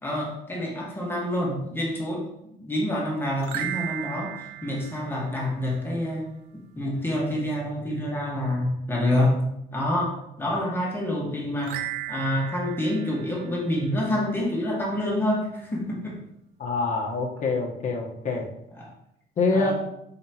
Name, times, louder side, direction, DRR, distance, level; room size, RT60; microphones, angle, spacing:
voice 1, 0.0-2.3 2.6-6.3 6.7-9.4 9.7-11.8 12.1-16.2 18.7-18.9 19.5-19.7, left 1 dB, 15° left, -4 dB, 1.7 m, -27 dB
sound 1, 3.4-5.9 11.6-14.2, right 12 dB, 90° right, 0.7 m, -36 dB
voice 2, 16.6-18.5 19.4-19.7, left 3 dB, 50° left, 1 dB, 1.4 m, -25 dB
6.3 x 5.6 x 3.0 m, 0.80 s
cardioid pair, 110°, 17 cm